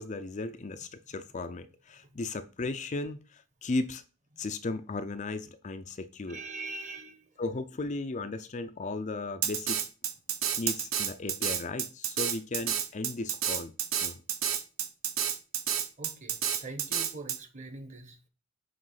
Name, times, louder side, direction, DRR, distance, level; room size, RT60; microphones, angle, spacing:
voice 1, 0.0-4.0 4.4-6.4 7.4-9.8 10.6-13.8 14.0-14.2, left 3 dB, 35° left, 0.5 m, -36 dB
voice 2, 6.3-7.2 16.0-18.2, right 3 dB, 40° right, 1.2 m, -42 dB
Drum kit, 9.4-17.4, right 9 dB, 85° right, 1.0 m, -30 dB
7.6 x 3.1 x 5.6 m
head